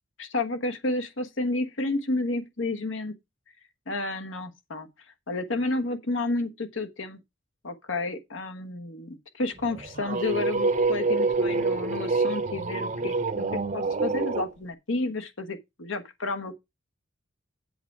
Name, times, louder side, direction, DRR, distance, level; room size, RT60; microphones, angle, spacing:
voice 1, 0.2-3.1 3.9-4.9 5.3-7.2 7.6-16.5, left 2 dB, 70° left, 1.3 m, -31 dB
sound 1, 9.6-14.5, right 3 dB, 40° right, 0.9 m, -27 dB
7.9 x 6.6 x 4.7 m
head